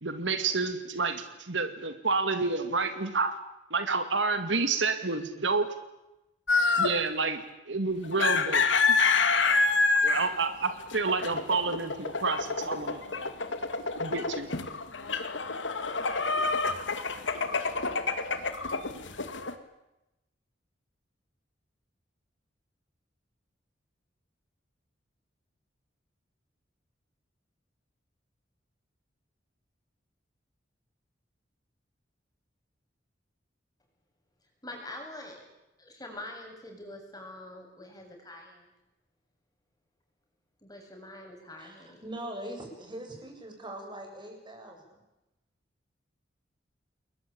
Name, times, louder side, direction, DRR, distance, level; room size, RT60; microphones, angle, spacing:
voice 1, 0.0-3.4 3.7-5.7 6.8-7.4 7.7-9.0 10.0-13.3 14.0-14.5, right 4 dB, 75° right, 9 dB, 2.3 m, -29 dB
sound 1, 6.5-7.0 8.0-19.5, left 4 dB, 80° left, 2.3 m, -27 dB
voice 2, 34.6-35.4 35.8-38.7 40.6-42.0, left 1 dB, 20° left, 2 dB, 7.6 m, -44 dB
voice 3, 41.6-45.0, right 1 dB, 25° right, 2 dB, 7.4 m, -42 dB
29.0 x 21.5 x 8.8 m, 0.95 s
head